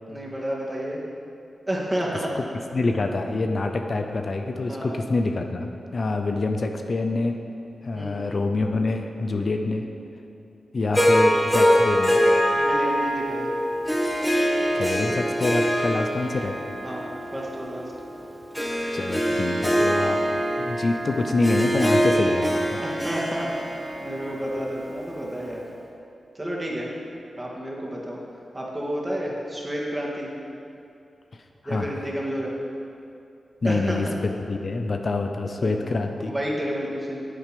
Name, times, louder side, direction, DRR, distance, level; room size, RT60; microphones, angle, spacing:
voice 1, 0.1-1.0 1.7-2.3 4.7-5.0 7.9-8.2 9.4-9.7 12.6-13.5 16.8-17.9 22.8-25.7 26.3-26.9 27.4-28.2 28.5-30.3 31.6-32.5 33.6-34.2 35.6-37.3, equal, 20° right, -4 dB, 2.3 m, -31 dB
voice 2, 2.7-7.4 7.8-9.9 10.7-12.2 14.7-16.6 18.9-20.2 20.6-22.8 31.7-31.9 33.6-36.3, left 3 dB, 60° left, 5 dB, 0.6 m, -26 dB
Harp, 10.9-25.3, equal, 5° left, 1.6 m, -24 dB
8.8 x 7.5 x 5.1 m, 2.6 s
cardioid pair, 45°, 0 cm